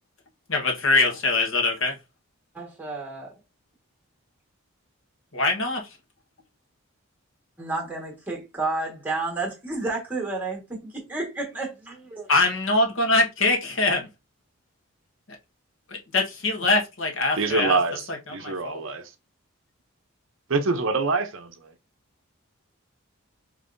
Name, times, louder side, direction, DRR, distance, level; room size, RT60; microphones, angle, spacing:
voice 1, 0.5-1.9 5.3-5.8 12.3-14.1 16.1-17.8 18.4-18.8, left 3 dB, 60° left, 1.2 m, -23 dB
voice 2, 2.5-3.3 7.6-12.3, right 3 dB, 10° right, 1.4 m, -31 dB
voice 3, 17.4-19.1 20.5-21.7, right 3 dB, 60° right, 0.6 m, -25 dB
5.2 x 3.1 x 2.6 m
head